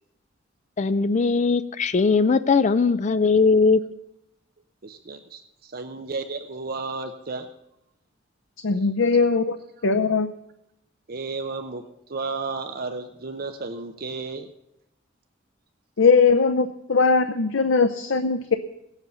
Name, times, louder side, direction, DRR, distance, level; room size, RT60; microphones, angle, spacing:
voice 1, 0.8-3.8, left 4 dB, 40° left, 13 dB, 0.4 m, -19 dB
voice 2, 4.8-7.5 8.7-8.9 11.1-14.5, right 3 dB, 50° right, 7 dB, 0.7 m, -33 dB
voice 3, 8.6-9.6 9.8-10.3 16.0-18.5, left 4 dB, 85° left, 9 dB, 0.6 m, -20 dB
17.0 x 8.1 x 6.8 m, 0.82 s
head